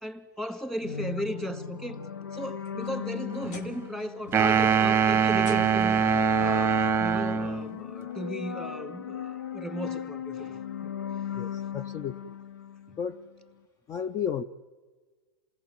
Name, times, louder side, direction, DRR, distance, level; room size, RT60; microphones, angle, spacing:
voice 1, 0.0-2.0 2.3-6.0 6.4-10.5, equal, 5° left, 2.0 m, -36 dB
sound 1, 0.8-13.3, left 9 dB, 80° left, 0.7 m, -37 dB
sound 2, 2.4-4.0 4.3-4.7 5.4-6.1 7.2-7.3 8.0-8.1 9.7-9.8, left 4 dB, 60° left, 2.5 m, -48 dB
sound 3, 4.3-7.7, right 7 dB, 20° right, 0.8 m, -23 dB
voice 2, 11.3-12.4 13.0-13.2 13.9-14.4, left 8 dB, 30° left, 0.8 m, -33 dB
28.5 x 18.5 x 9.1 m
hypercardioid pair, 95°, 11 cm